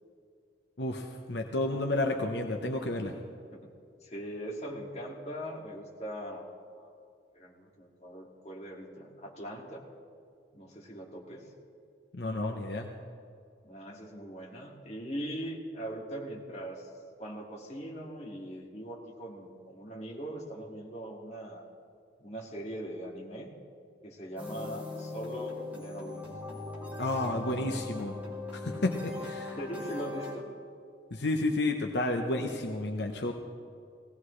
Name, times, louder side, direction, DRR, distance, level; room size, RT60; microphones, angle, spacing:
voice 1, 0.8-3.1 12.1-12.9 27.0-28.2 28.5-29.6 31.1-33.3, left 2 dB, 75° left, 3 dB, 1.0 m, -31 dB
voice 2, 4.0-6.5 6.7-6.9 7.3-9.8 10.5-11.5 13.6-16.9 17.2-21.7 22.2-23.5 24.0-26.3 26.8-27.5 29.6-30.5, right 1 dB, 40° left, -2 dB, 2.2 m, -41 dB
sound 1, 24.4-30.4, left 3 dB, 10° right, 2.3 m, -40 dB
19.0 x 17.0 x 3.3 m, 2.3 s
head